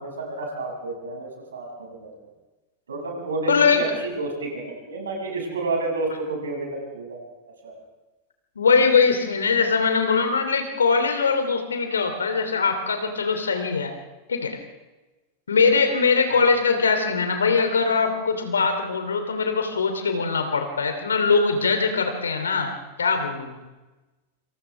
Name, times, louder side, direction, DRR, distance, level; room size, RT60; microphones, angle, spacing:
voice 1, 0.0-2.1 2.9-4.6 4.9-7.2 7.6-7.8 16.3-16.5, right 3 dB, 70° right, 0 dB, 6.5 m, -30 dB
voice 2, 3.5-3.9 8.6-13.9 14.3-14.6 15.5-22.7 23.0-23.6, left 5 dB, 70° left, 7 dB, 3.0 m, -21 dB
27.5 x 27.0 x 3.5 m, 1.1 s
figure-of-eight pair, 90°, 0 cm